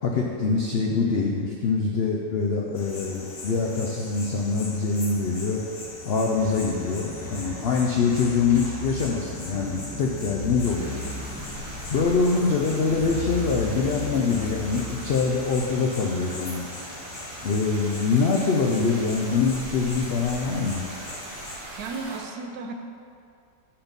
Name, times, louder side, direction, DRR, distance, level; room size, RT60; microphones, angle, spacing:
voice 1, 0.0-5.6 6.0-11.0 11.9-16.7 17.4-20.8, left 4 dB, 70° left, 0 dB, 0.5 m, -24 dB
sound 1, 2.7-21.6, left 2 dB, 35° left, 0.7 m, -41 dB
sound 2, 6.4-18.6, left 2 dB, 5° right, 0.9 m, -37 dB
sound 3, 10.6-22.2, right 1 dB, 45° right, 1.3 m, -40 dB
voice 2, 21.8-22.7, right 4 dB, 75° right, 4 dB, 1.2 m, -34 dB
7.7 x 4.3 x 5.2 m, 2.4 s
omnidirectional pair, 1.7 m